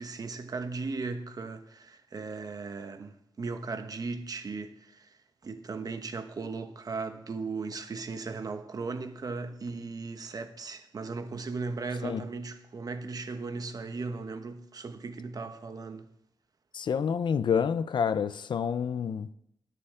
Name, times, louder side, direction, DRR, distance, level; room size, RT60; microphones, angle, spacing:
voice 1, 0.0-16.1, right 4 dB, 50° right, 1.0 m, -37 dB
voice 2, 16.7-19.3, left 7 dB, 75° left, 0.6 m, -28 dB
20.0 x 6.9 x 3.7 m
wide cardioid pair, 105°, 8 cm